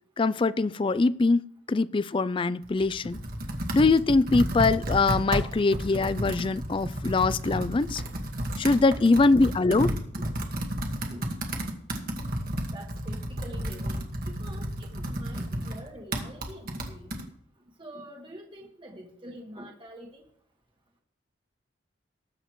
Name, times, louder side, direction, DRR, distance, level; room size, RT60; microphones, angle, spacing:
voice 1, 0.2-1.4 1.7-3.2 3.7-8.0 8.6-9.9, left 3 dB, 30° left, 17 dB, 0.4 m, -23 dB
Computer keyboard, 2.6-17.2, right 1 dB, 55° right, 1.6 m, -32 dB
voice 2, 9.8-10.3 11.1-11.3 12.7-17.1 17.8-20.2, equal, 30° right, 0 dB, 1.6 m, -46 dB
19.0 x 8.0 x 3.1 m, 0.66 s
head